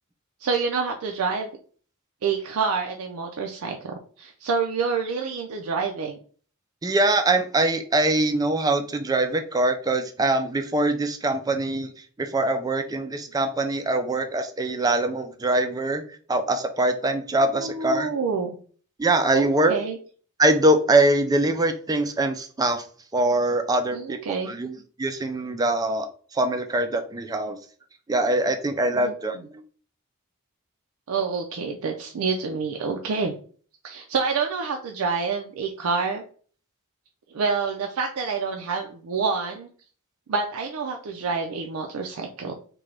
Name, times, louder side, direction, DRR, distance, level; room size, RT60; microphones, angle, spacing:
voice 1, 0.4-1.5 2.2-6.2 17.5-18.6 19.3-20.0 23.9-24.6 28.9-29.1 31.1-33.3 33.8-36.2 37.3-39.7 40.3-42.6, right 5 dB, 85° right, 2 dB, 0.4 m, -27 dB
voice 2, 6.8-11.9 12.2-16.0 16.3-18.1 19.0-19.8 20.4-22.9 23.1-24.2 24.4-27.6 28.1-29.6, right 2 dB, 15° right, 7 dB, 0.3 m, -23 dB
3.7 x 2.2 x 3.2 m, 0.44 s
head